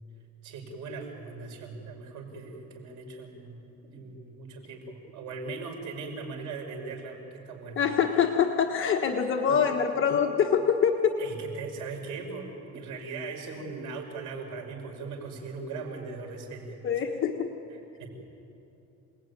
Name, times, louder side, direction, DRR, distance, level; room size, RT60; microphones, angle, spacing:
voice 1, 0.4-7.8 9.5-9.6 11.2-17.0 17.7-18.1, right 4 dB, 85° right, 2 dB, 5.3 m, -39 dB
voice 2, 7.8-11.2 16.8-17.5, left 7 dB, 45° left, 3 dB, 1.4 m, -25 dB
28.0 x 19.5 x 9.4 m, 2.9 s
cardioid pair, 145°, 29 cm